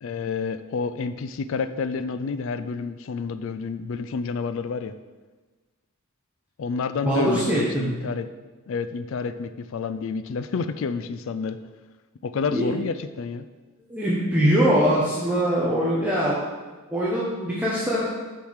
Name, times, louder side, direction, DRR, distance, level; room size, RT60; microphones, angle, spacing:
voice 1, 0.0-4.9 6.6-8.3 8.7-11.6 12.2-13.5, left 5 dB, 65° left, 11 dB, 0.4 m, -29 dB
voice 2, 7.0-8.0 12.5-12.7 13.9-16.4 16.9-18.0, equal, 5° right, -7 dB, 1.1 m, -22 dB
6.8 x 4.7 x 6.4 m, 1.3 s
head